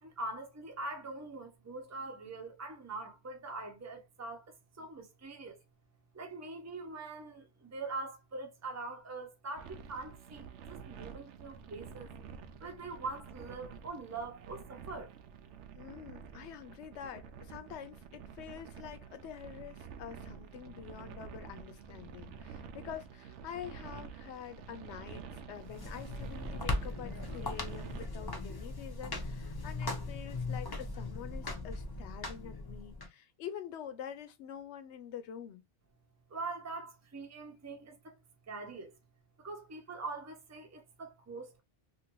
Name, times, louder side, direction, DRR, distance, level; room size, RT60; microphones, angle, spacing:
voice 1, 0.0-5.6 6.1-12.1 12.6-15.1 36.3-38.2 38.5-38.9 39.4-41.6, right 3 dB, 20° right, 0.6 m, -43 dB
sound 1, 9.6-28.1, right 6 dB, 85° right, 0.9 m, -49 dB
voice 2, 15.7-35.6, left 9 dB, 75° left, 0.9 m, -46 dB
sound 2, 25.6-33.1, left 2 dB, 30° left, 0.5 m, -39 dB
2.9 x 2.6 x 2.9 m
omnidirectional pair, 1.2 m